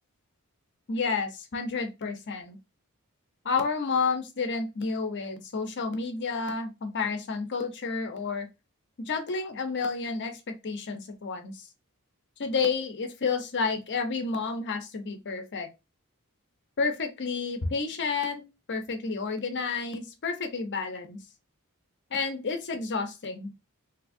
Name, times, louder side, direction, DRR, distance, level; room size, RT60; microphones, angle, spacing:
voice 1, 0.9-2.6 3.4-8.5 9.0-11.7 12.4-15.7 16.8-18.4 18.7-21.2 22.1-23.5, left 4 dB, 55° left, 7 dB, 0.7 m, -30 dB
3.5 x 2.7 x 2.6 m, 0.25 s
head